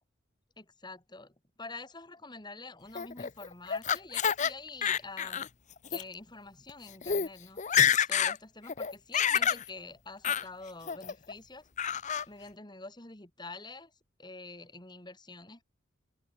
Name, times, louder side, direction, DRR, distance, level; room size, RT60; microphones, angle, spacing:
voice 1, 0.6-5.5 5.9-7.6 8.0-11.7 12.3-13.9 14.2-15.6, left 3 dB, 25° left, 2.8 m, -47 dB
Laughter, 2.9-4.5 4.8-5.5 5.8-6.0 6.7-6.8 7.0-7.3 7.6-8.4 8.7-9.6 10.2-10.4 10.9-11.3 11.8-12.2, left 8 dB, 40° left, 0.7 m, -28 dB
head